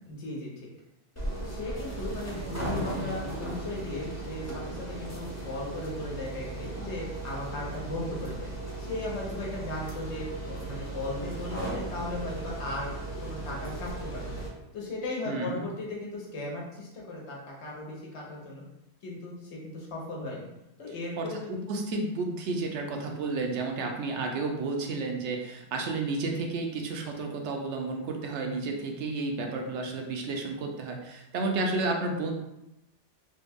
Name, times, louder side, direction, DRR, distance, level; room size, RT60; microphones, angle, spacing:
voice 1, 0.1-0.7 1.4-8.5 8.8-12.9 13.2-14.4 14.7-18.6 19.0-20.5 20.8-21.5, left 2 dB, 80° left, -2 dB, 1.2 m, -37 dB
sound 1, 1.2-14.5, right 2 dB, 20° left, 0.6 m, -36 dB
voice 2, 15.3-15.6 21.2-32.3, right 3 dB, 85° right, 2 dB, 0.9 m, -31 dB
3.3 x 2.2 x 3.4 m, 0.89 s
omnidirectional pair, 1.1 m